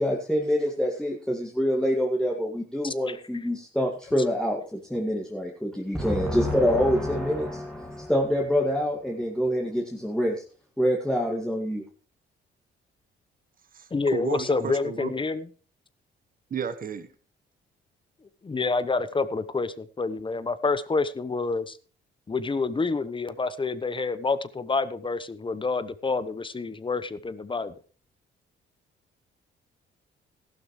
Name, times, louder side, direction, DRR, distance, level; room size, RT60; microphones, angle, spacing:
voice 1, 0.0-10.4 10.8-11.8, equal, 5° left, -2 dB, 2.1 m, -26 dB
voice 2, 2.8-3.2 13.9-15.5 18.4-21.8 22.3-27.7, left 4 dB, 25° left, 14 dB, 1.0 m, -28 dB
voice 3, 13.7-15.1 16.5-17.1, right 6 dB, 45° right, 11 dB, 1.3 m, -33 dB
15.0 x 12.0 x 3.2 m, 0.40 s
cardioid pair, 90°, 20 cm